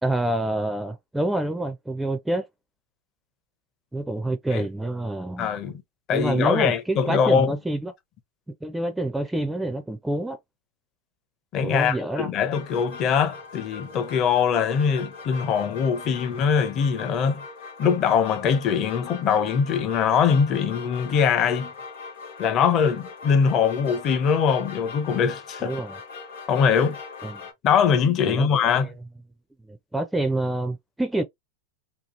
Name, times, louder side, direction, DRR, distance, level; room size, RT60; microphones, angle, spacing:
voice 1, 0.0-2.5 3.9-5.5 6.1-7.9 8.6-10.4 11.6-12.3 25.6-26.0 27.2-27.4 28.2-28.9 29.7-31.2, right 1 dB, 5° right, 0.4 m, -27 dB
voice 2, 5.4-5.8 6.1-7.5 11.5-17.4 17.8-21.7 22.4-25.8 26.5-27.0 27.6-28.9, left 7 dB, 40° left, 0.6 m, -22 dB
sound 1, 12.5-27.5, left 4 dB, 80° left, 1.0 m, -40 dB
2.8 x 2.3 x 2.5 m
hypercardioid pair, 115°, 0 cm